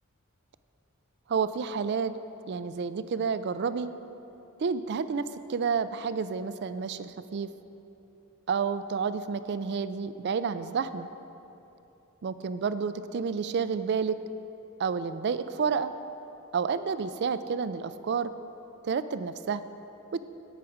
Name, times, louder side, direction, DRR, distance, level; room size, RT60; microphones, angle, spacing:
voice 1, 1.3-2.1 2.5-3.9 4.6-7.5 8.5-11.1 12.2-14.2 14.8-15.9 16.5-18.3 18.8-19.6, right 5 dB, 50° right, 13 dB, 0.4 m, -30 dB
16.5 x 5.9 x 5.0 m, 2.9 s
head